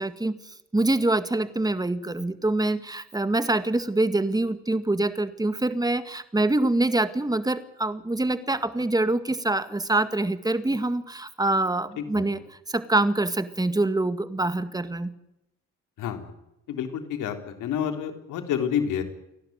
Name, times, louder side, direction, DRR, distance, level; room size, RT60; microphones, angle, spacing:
voice 1, 0.0-12.4 12.7-15.1, right 2 dB, 15° right, 11 dB, 1.9 m, -25 dB
voice 2, 16.0-16.3 16.7-19.0, left 8 dB, 85° left, 6 dB, 3.6 m, -29 dB
29.5 x 12.0 x 9.3 m, 0.87 s
cardioid pair, 90°, 30 cm